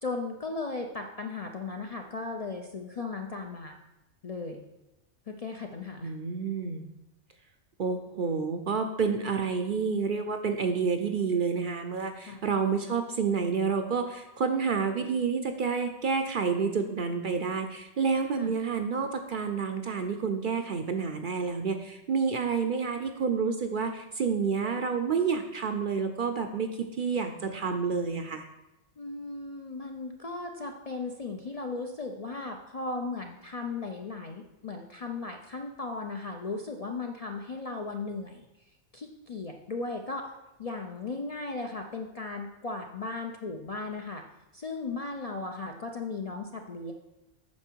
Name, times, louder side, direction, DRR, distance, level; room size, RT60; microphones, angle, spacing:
voice 1, 0.0-3.8 4.2-4.6 5.3-6.1 12.3-12.4 18.4-18.5 29.0-38.5 38.9-40.3 40.6-44.2 44.5-46.9, left 3 dB, 45° left, 3 dB, 0.5 m, -36 dB
voice 2, 6.0-6.9 7.8-28.5, right 5 dB, 55° right, 6 dB, 0.6 m, -29 dB
8.6 x 5.9 x 4.5 m, 0.96 s
omnidirectional pair, 1.2 m